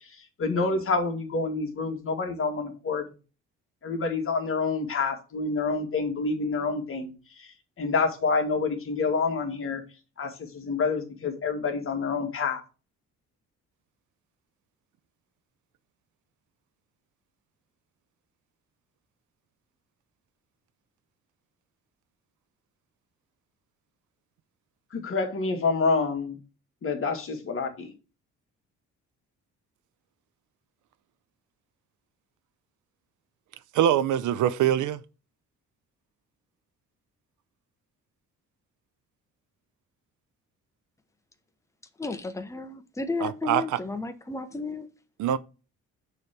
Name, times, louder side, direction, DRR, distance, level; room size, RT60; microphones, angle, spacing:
voice 1, 0.0-3.1 3.8-9.8 10.2-12.6 24.9-26.3 26.8-27.9, left 4 dB, 45° left, 1.8 m, -28 dB
voice 2, 33.7-35.0 43.2-43.8 45.2-45.4, right 10 dB, 75° right, 0.6 m, -24 dB
voice 3, 42.0-44.9, left 3 dB, 10° left, 0.9 m, -33 dB
6.8 x 3.3 x 5.9 m
cardioid pair, 90°, 30 cm